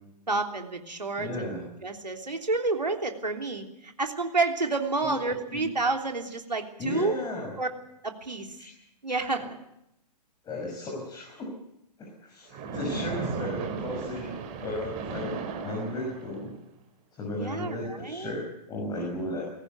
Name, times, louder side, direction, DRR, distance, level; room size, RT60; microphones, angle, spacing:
voice 1, 0.3-1.3 1.8-7.2 7.6-7.7 8.0-8.6 9.0-9.5 17.4-18.3, right 3 dB, 80° right, 3 dB, 3.2 m, -29 dB
voice 2, 1.2-1.7 5.0-5.1 5.5-5.7 6.8-7.5 8.6-8.7 9.3-9.5 10.4-11.5 12.0-14.3 14.6-15.4 15.6-16.5 17.1-19.4, left 1 dB, 20° left, -1 dB, 5.9 m, -35 dB
Splash splatter, 12.5-16.5, right 4 dB, 30° right, 4.6 m, -35 dB
21.0 x 18.0 x 8.3 m, 0.83 s
figure-of-eight pair, 115°, 21 cm